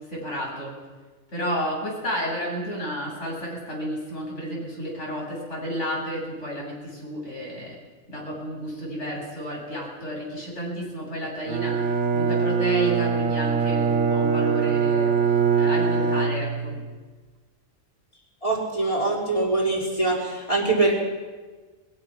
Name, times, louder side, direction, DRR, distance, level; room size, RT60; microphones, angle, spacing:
voice 1, 0.1-0.8 1.3-7.8 8.1-11.9 12.1-15.2 15.6-16.8, equal, 55° left, -3 dB, 8.1 m, -31 dB
Bowed string instrument, 11.5-16.9, right 5 dB, 80° right, 1.6 m, -23 dB
voice 2, 18.4-20.9, right 2 dB, 25° left, -2 dB, 5.1 m, -23 dB
22.5 x 22.0 x 6.1 m, 1.4 s
omnidirectional pair, 1.4 m